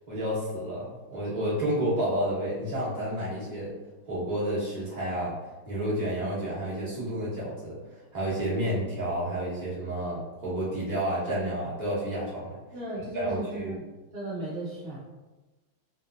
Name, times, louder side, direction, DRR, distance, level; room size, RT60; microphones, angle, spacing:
voice 1, 0.1-3.7 4.1-5.3 5.7-7.8 8.1-12.6 13.1-13.7, right 1 dB, 30° right, -9 dB, 0.9 m, -30 dB
voice 2, 12.7-13.7 14.1-15.0, right 1 dB, 85° right, -8 dB, 0.5 m, -35 dB
3.5 x 2.9 x 2.5 m, 1.2 s
omnidirectional pair, 2.4 m